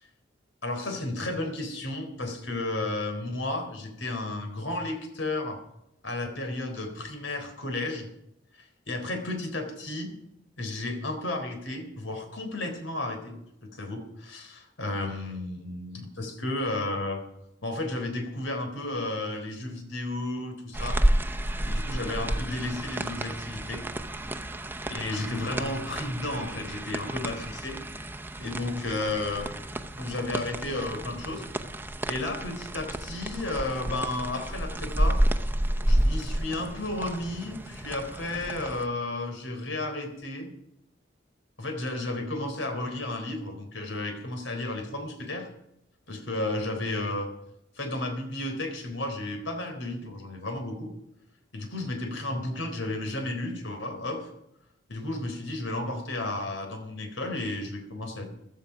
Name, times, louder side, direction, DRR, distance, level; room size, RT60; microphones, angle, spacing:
voice 1, 0.6-5.6 6.0-8.1 8.6-10.1 10.6-17.2 17.6-21.0 21.6-23.8 24.9-27.8 28.4-29.5 30.0-31.5 32.1-35.2 35.9-40.5 41.6-45.5 46.1-47.3 47.8-50.9 51.5-54.3 54.9-58.3, left 2 dB, 90° left, 5 dB, 3.9 m, -33 dB
sound 1, 20.7-38.9, right 1 dB, 10° right, 0.7 m, -30 dB
15.5 x 13.0 x 5.1 m, 0.81 s
head